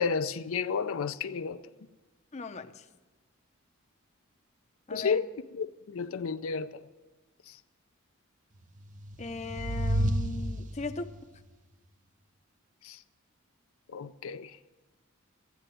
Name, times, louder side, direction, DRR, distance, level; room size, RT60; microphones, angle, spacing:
voice 1, 0.0-1.6 4.9-6.8 7.5-7.6 12.8-13.0 13.9-14.6, left 5 dB, 75° left, 0.5 m, -32 dB
voice 2, 2.3-2.7 4.9-5.2 9.2-11.1, left 3 dB, 30° left, 0.6 m, -37 dB
sound 1, 8.8-11.2, equal, 35° right, 0.6 m, -31 dB
15.5 x 9.4 x 9.0 m
head